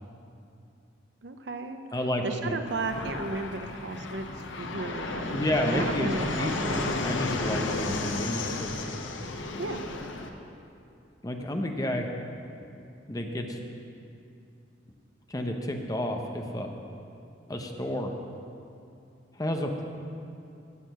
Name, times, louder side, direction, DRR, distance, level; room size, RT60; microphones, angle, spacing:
voice 1, 1.2-1.8 2.2-4.3 4.6-5.4 5.7-6.9 9.6-9.8, right 3 dB, 65° right, 7 dB, 0.7 m, -34 dB
voice 2, 1.9-2.6 5.3-6.1 6.4-8.7 11.2-12.1 13.1-13.6 15.3-16.7 17.5-18.1 19.3-19.8, left 1 dB, 20° left, 3 dB, 0.8 m, -31 dB
Fixed-wing aircraft airplane, 2.7-10.3, left 2 dB, 90° left, 0.9 m, -32 dB
14.0 x 6.7 x 6.6 m, 2.6 s
head